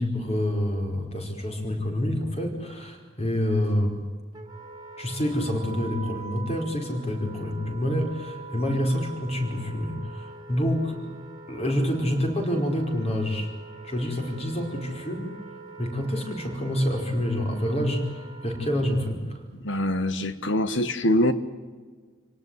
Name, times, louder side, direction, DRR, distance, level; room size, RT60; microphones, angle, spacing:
voice 1, 0.0-4.0 5.0-11.0 11.5-13.5 13.8-15.3 15.8-19.4, equal, 30° left, 3 dB, 4.9 m, -27 dB
Wind instrument woodwind instrument, 4.3-19.2, right 3 dB, 20° right, 2.5 m, -44 dB
voice 2, 19.6-21.3, left 1 dB, 65° left, 12 dB, 1.5 m, -24 dB
27.5 x 18.5 x 9.7 m, 1.5 s
head